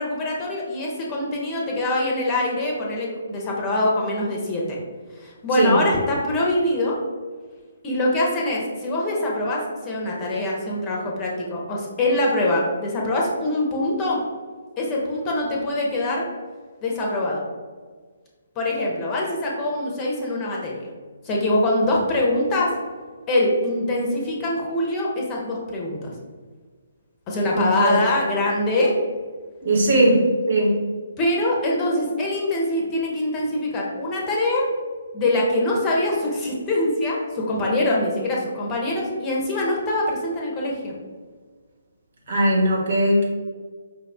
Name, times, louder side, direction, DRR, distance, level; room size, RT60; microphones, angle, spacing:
voice 1, 0.0-4.8 5.2-7.0 7.8-14.2 14.8-16.2 16.8-17.4 18.6-20.9 21.2-22.7 23.3-26.1 27.3-28.9 31.2-34.7 35.1-40.9, left 1 dB, 20° left, -2 dB, 0.8 m, -24 dB
voice 2, 27.4-28.0 29.6-30.7 42.3-43.3, right 1 dB, 50° right, -1 dB, 1.1 m, -19 dB
5.1 x 2.4 x 3.5 m, 1.5 s
figure-of-eight pair, 135°, 0 cm